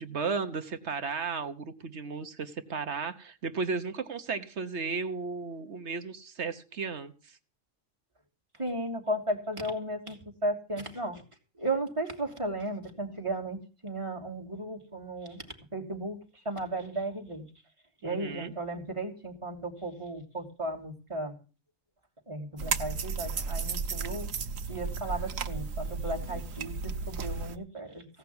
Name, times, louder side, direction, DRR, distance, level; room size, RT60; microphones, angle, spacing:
voice 1, 0.0-7.4 18.0-18.5, right 4 dB, 60° right, 9 dB, 1.3 m, -34 dB
voice 2, 8.6-10.2 10.4-11.2 11.6-13.6 13.8-15.4 15.7-16.2 16.4-17.5 18.0-21.4 22.3-24.3 24.7-28.1, right 1 dB, 25° right, 0 dB, 3.0 m, -35 dB
sound 1, 22.6-27.6, right 5 dB, 85° right, 1.4 m, -34 dB
17.0 x 5.9 x 9.5 m, 0.37 s
omnidirectional pair, 1.3 m